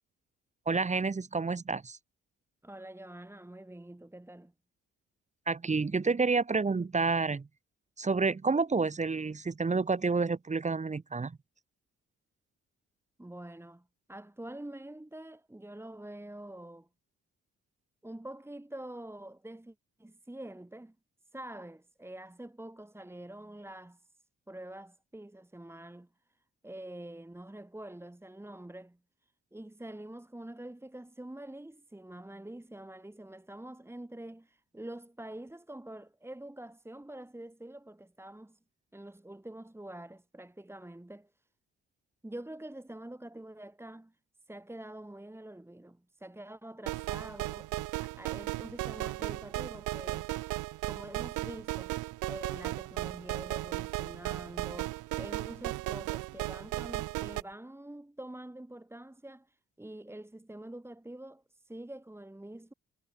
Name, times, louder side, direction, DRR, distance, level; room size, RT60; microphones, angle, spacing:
voice 1, 0.7-2.0 5.5-7.5 8.0-11.3, right 4 dB, 25° right, 1.2 m, -29 dB
voice 2, 2.6-4.5 13.2-16.9 18.0-20.9 21.3-24.1 24.5-26.4 26.6-29.0 29.5-38.6 38.9-41.3 42.2-44.2 44.5-50.3 50.8-62.7, right 1 dB, 10° right, 2.8 m, -46 dB
sound 1, 46.9-57.4, right 19 dB, 85° right, 0.6 m, -36 dB
cardioid pair, 90°, 30 cm